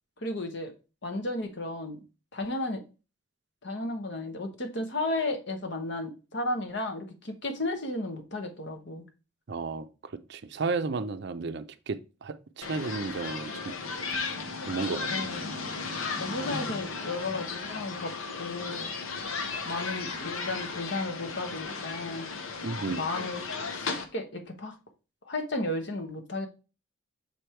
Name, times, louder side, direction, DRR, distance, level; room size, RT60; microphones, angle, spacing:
voice 1, 0.2-0.7 1.0-2.0 2.3-2.8 3.6-9.0 15.1-15.5 16.2-18.9 19.6-22.3 22.8-23.5 23.8-24.8 25.2-26.5, left 2 dB, 55° left, 1.2 m, -34 dB
voice 2, 9.5-13.5 14.7-15.1 22.6-23.0, right 4 dB, 55° right, 0.5 m, -33 dB
sound 1, 12.6-24.1, left 4 dB, 80° left, 1.0 m, -35 dB
6.9 x 3.3 x 4.4 m
head